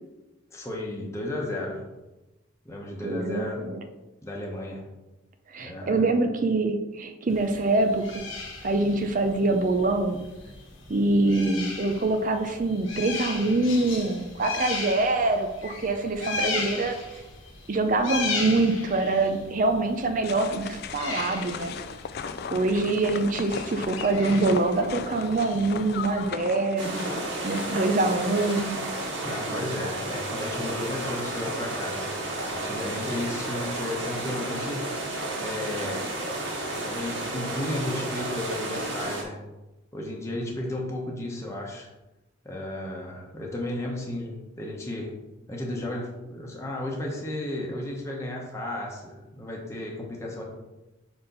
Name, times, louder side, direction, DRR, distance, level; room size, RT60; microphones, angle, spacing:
voice 1, 0.5-1.9 2.6-3.6 4.2-4.8 5.6-6.0 29.2-32.1 32.5-34.8 35.4-36.2 36.9-39.4 39.9-41.9 42.4-45.1 45.5-50.4, left 1 dB, 15° left, -2 dB, 1.1 m, -33 dB
voice 2, 3.0-3.8 5.5-8.1 8.6-10.2 10.9-17.0 17.7-21.7 22.5-27.1 27.4-29.0, right 2 dB, 40° right, 6 dB, 0.5 m, -25 dB
sound 1, 7.3-26.3, left 4 dB, 80° left, 1.4 m, -37 dB
sound 2, 20.2-28.7, left 5 dB, 50° left, 0.4 m, -37 dB
sound 3, 26.8-39.2, right 1 dB, 65° right, 1.7 m, -32 dB
5.2 x 4.4 x 5.3 m, 1.0 s
head